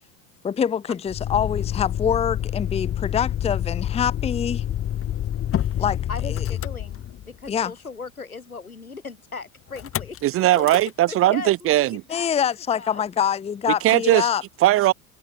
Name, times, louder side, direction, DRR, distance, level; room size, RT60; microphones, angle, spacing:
voice 1, 0.4-4.6 5.8-6.0 6.4-6.5 7.5-7.7 12.1-14.4, left 8 dB, 15° left, 0.8 m, -25 dB
Motor vehicle (road), 1.1-7.5 9.7-10.2 10.5-10.9, left 11 dB, 30° left, 2.5 m, -27 dB
voice 2, 6.1-10.7 11.0-12.3 12.7-13.3, left 4 dB, 85° left, 6.7 m, -38 dB
voice 3, 10.2-12.0 13.8-14.3 14.6-14.9, right 15 dB, 30° right, 0.9 m, -19 dB
figure-of-eight pair, 80°, 42 cm